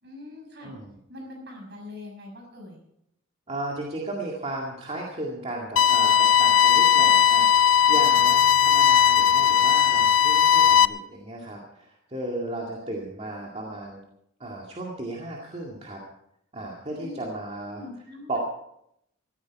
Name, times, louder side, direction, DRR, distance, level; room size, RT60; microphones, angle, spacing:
voice 1, 0.0-0.7 1.1-2.8 8.1-8.2 16.9-17.3 17.8-18.4, left 2 dB, 55° right, 2 dB, 6.1 m, -42 dB
voice 2, 0.6-1.0 3.5-14.0 14.4-16.0 16.5-17.8 18.3-18.4, right 1 dB, 30° right, -2 dB, 2.1 m, -35 dB
sound 1, 5.8-10.9, left 8 dB, 70° left, 0.5 m, -18 dB
17.0 x 13.5 x 4.7 m, 0.77 s
head